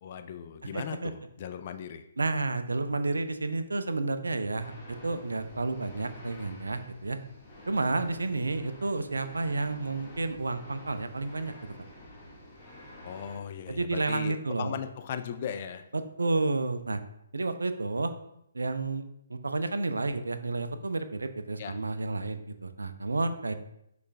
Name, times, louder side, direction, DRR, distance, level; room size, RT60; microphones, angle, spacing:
voice 1, 0.0-2.0 13.0-15.9 21.6-21.8, left 8 dB, 40° left, 8 dB, 0.4 m, -38 dB
voice 2, 0.7-1.1 2.2-7.2 7.7-11.5 13.7-14.8 15.9-17.0 17.3-18.1 18.5-19.0 19.3-23.5, right 3 dB, 70° right, 9 dB, 0.4 m, -31 dB
sound 1, 4.6-13.4, left 1 dB, 15° left, 1.3 m, -49 dB
6.3 x 2.4 x 3.3 m, 0.78 s
figure-of-eight pair, 130°, 0 cm